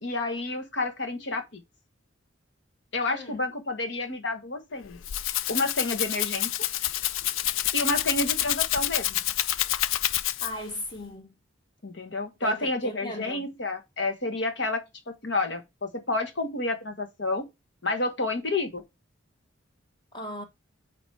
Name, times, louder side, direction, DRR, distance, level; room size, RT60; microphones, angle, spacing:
voice 1, 0.0-1.6 2.9-5.0 5.5-6.5 7.7-9.2 11.8-17.5 17.8-18.8, left 2 dB, 65° left, 1.4 m, -30 dB
voice 2, 3.1-3.5 10.4-11.3 12.4-13.5 20.1-20.4, left 1 dB, 25° left, 1.2 m, -38 dB
Rattle (instrument), 4.8-10.7, left 13 dB, 80° left, 0.4 m, -28 dB
8.7 x 3.1 x 4.6 m
head